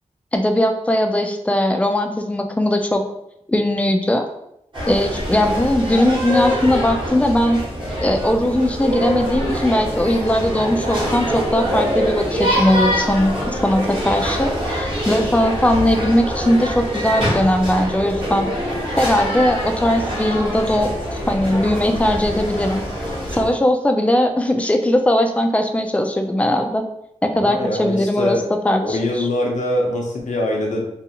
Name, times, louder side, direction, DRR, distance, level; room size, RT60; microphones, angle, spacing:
voice 1, 0.3-3.0 3.5-4.3 4.9-7.6 8.0-18.5 19.0-22.8 23.3-26.8 27.2-28.4 28.7-29.3, left 1 dB, 10° left, 5 dB, 0.3 m, -19 dB
sound 1, 4.7-23.5, equal, 40° right, 1.1 m, -24 dB
voice 2, 27.3-28.4 28.8-30.8, left 1 dB, 80° left, -1 dB, 0.7 m, -23 dB
2.5 x 2.3 x 2.8 m, 0.79 s
wide cardioid pair, 80°, 12 cm